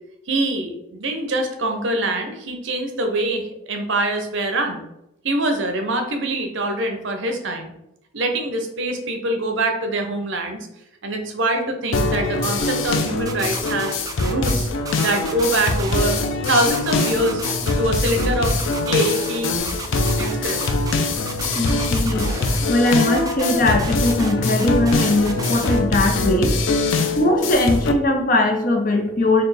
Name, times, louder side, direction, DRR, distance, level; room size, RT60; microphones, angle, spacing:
voice 1, 0.3-4.8 5.2-7.7 8.1-10.7 11.0-14.0 14.3-14.7 14.9-16.2 16.5-17.4 17.8-18.6 18.9-19.5 20.2-20.6, right 1 dB, 75° right, 4 dB, 0.6 m, -24 dB
sound 1, 11.9-27.9, left 2 dB, 90° left, 0.4 m, -23 dB
sound 2, 13.3-14.5 14.9-16.2 16.5-17.7 18.1-19.4 19.7-20.9 21.3-22.6 22.9-25.8, right 4 dB, 20° right, 0.3 m, -33 dB
voice 2, 21.5-22.3 22.7-26.6 27.2-29.4, left 2 dB, 45° left, 3 dB, 0.6 m, -20 dB
4.1 x 2.3 x 3.4 m, 0.84 s
head